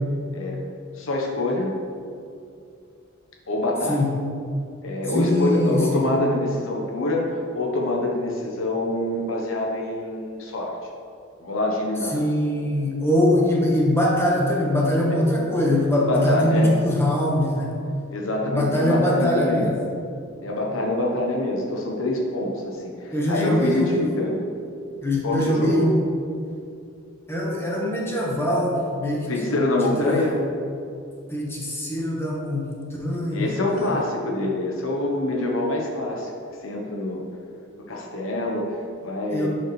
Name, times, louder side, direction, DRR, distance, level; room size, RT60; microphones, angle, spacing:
voice 1, 0.9-1.7 3.5-4.0 4.8-10.8 11.4-12.2 16.0-16.7 18.1-19.7 20.4-24.5 25.2-26.0 29.3-30.4 33.3-36.3 36.6-37.2 37.8-39.5, left 2 dB, 80° left, -1 dB, 1.0 m, -25 dB
voice 2, 5.1-6.1 12.1-17.7 18.5-19.7 23.1-24.1 25.0-26.0 27.3-29.4 29.8-30.2 31.3-32.7 33.0-33.9 39.3-39.5, left 1 dB, 10° left, -3 dB, 1.4 m, -22 dB
10.5 x 5.5 x 3.2 m, 2.5 s
head